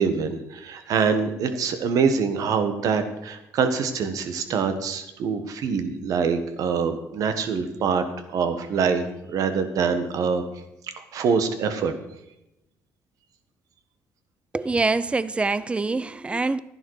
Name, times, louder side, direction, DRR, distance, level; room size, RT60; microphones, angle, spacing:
voice 1, 0.0-10.4 11.0-11.9, right 5 dB, 70° right, 1.4 m, -25 dB
voice 2, 14.5-16.6, right 3 dB, 20° right, 0.5 m, -25 dB
12.5 x 10.5 x 4.8 m
cardioid pair, 90°, 6 cm